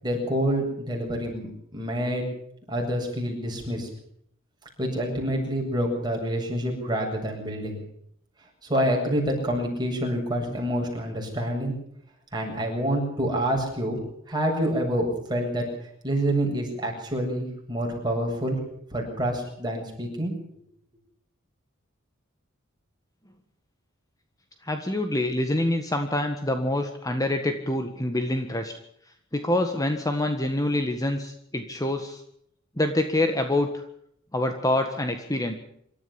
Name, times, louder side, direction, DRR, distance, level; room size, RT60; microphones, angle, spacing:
voice 1, 0.0-1.5 1.7-2.3 2.7-3.9 4.8-7.8 8.7-11.7 12.3-14.0 14.3-15.7 16.0-18.6 18.9-20.3, equal, 20° right, 0 dB, 7.8 m, -27 dB
voice 2, 24.6-28.7 29.3-32.2 32.8-33.8 34.3-35.5, left 1 dB, 15° left, 6 dB, 1.7 m, -26 dB
26.5 x 13.5 x 7.2 m, 0.70 s
head